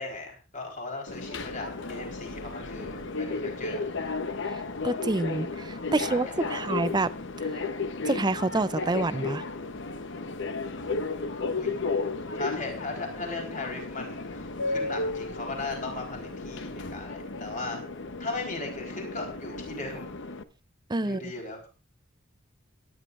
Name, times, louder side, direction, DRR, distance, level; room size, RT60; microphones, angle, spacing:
voice 1, 0.0-3.8 6.1-6.7 11.6-11.7 12.3-17.8 18.2-20.1 21.0-21.7, left 3 dB, 40° left, 4.0 m, -37 dB
Subway metro underground, 1.1-20.4, left 3 dB, 60° left, 1.0 m, -34 dB
voice 2, 4.8-7.1 8.0-9.4 20.9-21.2, right 2 dB, 20° right, 0.5 m, -27 dB
22.0 x 10.5 x 2.5 m
head